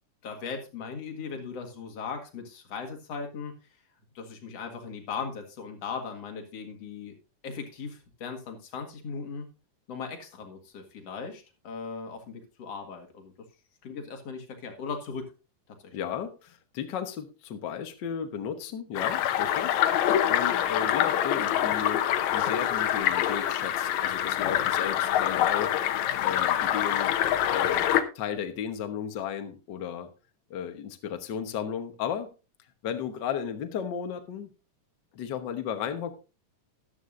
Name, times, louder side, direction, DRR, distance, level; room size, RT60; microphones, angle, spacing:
voice 1, 0.2-3.5 4.1-7.1 7.4-9.5 9.9-13.3 13.8-15.3 15.8-16.0, left 5 dB, 55° left, 4 dB, 2.6 m, -38 dB
voice 2, 15.9-25.8 26.2-27.2 27.5-27.9 28.1-30.1 30.5-32.3 32.8-34.5 35.1-36.1, left 8 dB, 90° left, 7 dB, 0.9 m, -34 dB
sound 1, 19.0-28.0, left 11 dB, 70° left, 2.0 m, -25 dB
13.5 x 11.0 x 2.5 m, 0.30 s
omnidirectional pair, 3.7 m